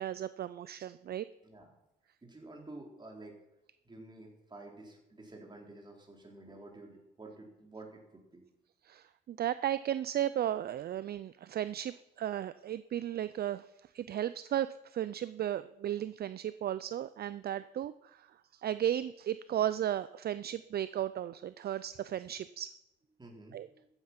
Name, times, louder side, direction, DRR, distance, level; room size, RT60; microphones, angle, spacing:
voice 1, 0.0-1.3 8.8-13.7 13.9-22.7 23.5-23.7, right 11 dB, 50° right, 15 dB, 0.5 m, -35 dB
voice 2, 1.4-1.7 2.2-3.4 3.8-8.4 23.2-23.9, right 2 dB, 20° right, 1 dB, 4.0 m, -50 dB
14.0 x 8.9 x 6.0 m, 0.88 s
cardioid pair, 90°, 20 cm